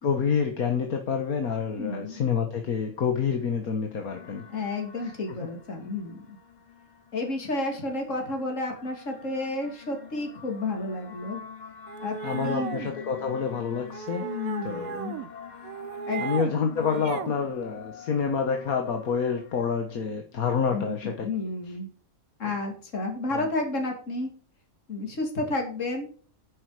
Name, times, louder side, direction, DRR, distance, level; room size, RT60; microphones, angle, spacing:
voice 1, 0.0-4.4 5.0-5.1 12.2-14.3 14.6-15.2 16.2-21.3 23.3-23.5, left 6 dB, 85° left, 4 dB, 1.8 m, -28 dB
voice 2, 1.8-2.2 4.5-6.4 7.1-11.4 12.0-12.7 14.2-15.2 16.1-16.2 20.7-21.9 22.4-24.3 24.9-26.1, left 2 dB, 60° left, 2 dB, 3.1 m, -31 dB
sound 1, 4.1-19.6, left 7 dB, 35° left, 1.0 m, -46 dB
sound 2, 11.9-12.9 13.9-15.3 15.6-16.5 16.8-17.4, right 7 dB, 85° right, 1.3 m, -35 dB
10.0 x 10.0 x 4.9 m, 0.42 s
omnidirectional pair, 1.5 m